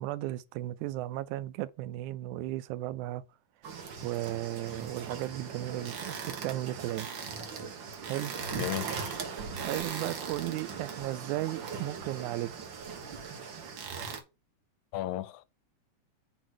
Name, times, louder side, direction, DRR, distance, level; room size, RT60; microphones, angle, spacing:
voice 1, 0.0-3.2 4.0-7.1 8.1-8.3 9.6-12.7, right 15 dB, 85° right, 2.0 m, -35 dB
sound 1, 3.6-14.2, right 5 dB, 55° right, 1.5 m, -39 dB
voice 2, 8.6-9.1 14.9-15.4, left 14 dB, 80° left, 1.9 m, -35 dB
6.0 x 4.6 x 6.4 m
omnidirectional pair, 3.4 m